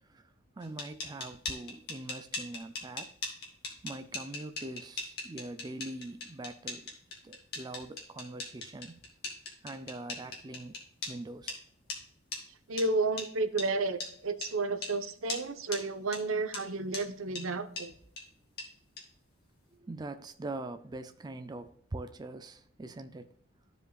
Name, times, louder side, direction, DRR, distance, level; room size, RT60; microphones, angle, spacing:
voice 1, 0.0-3.1 3.8-6.9 7.2-9.0 9.6-10.8 11.1-11.6 19.8-23.3, right 2 dB, 20° right, 0.4 m, -43 dB
sound 1, 0.6-11.1 11.5-11.6 11.9-12.0 12.3-12.4 12.8-12.9 13.2-13.3 13.6-13.7 14.0-14.1 14.4-14.5 14.8-14.9 15.3-15.4 15.7-15.8 16.1-16.2 16.5-16.6 16.9-17.0 17.4-17.5 17.8-17.9 18.2-18.3 18.6-18.7 19.0-19.1, left 3 dB, 50° left, 2.2 m, -38 dB
voice 2, 12.7-17.9, right 3 dB, 80° right, 0.9 m, -32 dB
14.5 x 5.0 x 2.3 m
head